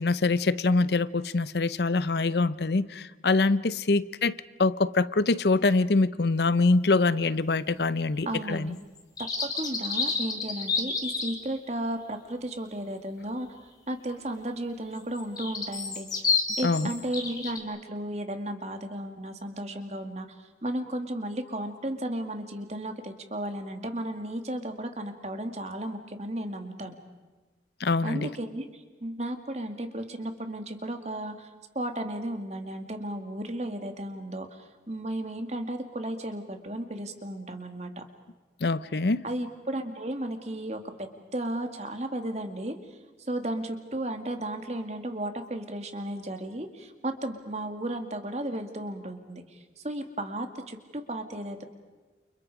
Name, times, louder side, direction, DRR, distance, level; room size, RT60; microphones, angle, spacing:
voice 1, 0.0-8.7 16.6-16.9 27.8-28.3 38.6-39.2, left 3 dB, 65° left, 0.7 m, -24 dB
voice 2, 8.3-8.8 9.5-13.5 13.9-16.3 16.6-26.9 28.0-31.5 31.7-38.0 39.2-42.8 43.3-51.6, right 1 dB, 40° right, 2.2 m, -34 dB
sound 1, 9.0-11.4 15.0-17.6, left 4 dB, 20° left, 2.9 m, -29 dB
29.5 x 29.5 x 4.9 m
head